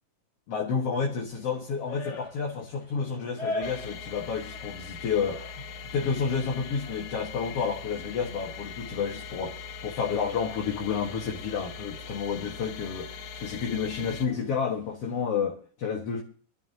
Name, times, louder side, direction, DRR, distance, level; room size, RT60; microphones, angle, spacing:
voice 1, 0.5-5.6 5.9-16.2, left 6 dB, 55° left, 2.3 m, -30 dB
sound 1, 1.2-15.3, left 1 dB, 35° left, 3.0 m, -44 dB
sound 2, 3.6-14.3, left 5 dB, 90° left, 2.9 m, -41 dB
23.5 x 13.0 x 2.8 m
omnidirectional pair, 3.8 m